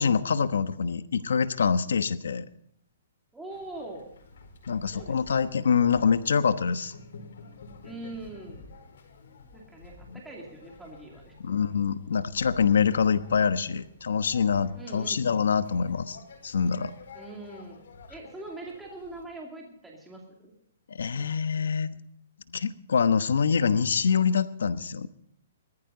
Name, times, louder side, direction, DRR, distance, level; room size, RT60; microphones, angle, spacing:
voice 1, 0.0-2.4 4.7-6.9 10.1-10.2 11.4-16.2 16.4-16.9 20.9-21.9 22.5-25.1, left 6 dB, 85° left, 12 dB, 1.1 m, -25 dB
voice 2, 3.3-4.0 4.9-5.5 7.8-8.7 9.5-11.6 14.7-15.2 17.1-20.5, right 2 dB, 5° right, -2 dB, 2.5 m, -42 dB
sound 1, 3.5-19.2, left 4 dB, 70° left, 4.9 m, -50 dB
20.0 x 14.0 x 4.0 m, 0.69 s
hypercardioid pair, 160°, 0 cm